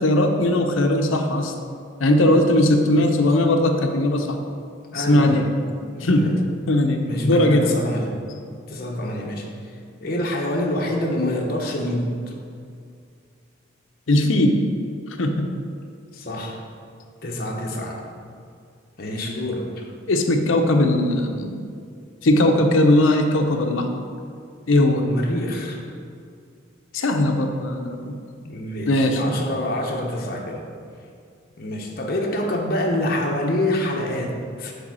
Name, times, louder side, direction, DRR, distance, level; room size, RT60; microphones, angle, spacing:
voice 1, 0.0-1.5 2.0-4.4 4.9-5.5 6.0-6.4 6.7-7.7 14.1-14.6 15.2-15.5 20.1-21.7 22.2-23.9 24.7-25.1 26.9-28.1 28.9-29.2, left 1 dB, 85° left, 5 dB, 0.7 m, -19 dB
voice 2, 4.9-5.5 5.9-6.4 7.1-8.2 8.7-9.5 10.0-12.3 16.1-16.7 17.2-17.9 19.0-19.9 25.0-25.8 28.4-30.6 31.6-34.7, left 1 dB, 50° left, 0 dB, 0.9 m, -26 dB
8.0 x 3.4 x 6.2 m, 2.3 s
head